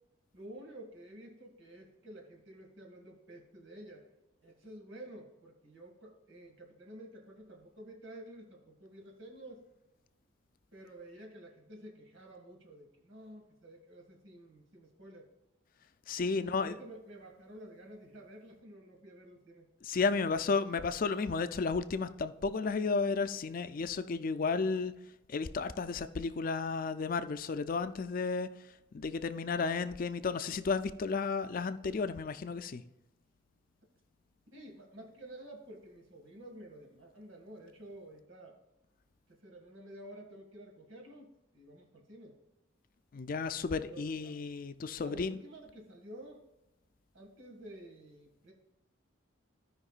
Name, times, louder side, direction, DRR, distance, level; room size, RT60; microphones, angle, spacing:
voice 1, 0.3-4.1 4.4-9.6 10.7-15.3 16.4-19.7 34.5-38.6 39.3-42.4 43.9-44.5 45.0-46.4 47.1-48.5, right 1 dB, 85° right, 2.0 m, -51 dB
voice 2, 16.1-16.8 19.8-25.0 25.3-28.6 28.9-32.8 43.1-45.4, left 4 dB, 45° left, 0.4 m, -33 dB
16.0 x 5.3 x 2.4 m
head